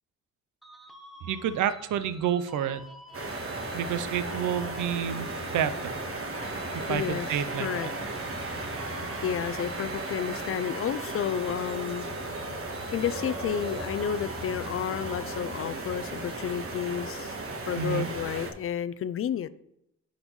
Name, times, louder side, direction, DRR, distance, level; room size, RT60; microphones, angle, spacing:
sound 1, 0.6-15.8, equal, ahead, 0.8 m, -50 dB
voice 1, 1.2-2.8 3.7-5.9 6.7-7.7 17.8-18.1, right 9 dB, 85° right, 0.6 m, -29 dB
sound 2, 3.1-18.5, right 2 dB, 50° right, 1.4 m, -35 dB
voice 2, 6.9-7.9 9.2-12.3 12.9-17.4 17.6-19.5, left 9 dB, 50° left, 0.4 m, -31 dB
10.5 x 3.9 x 3.1 m
cardioid pair, 85°, 30 cm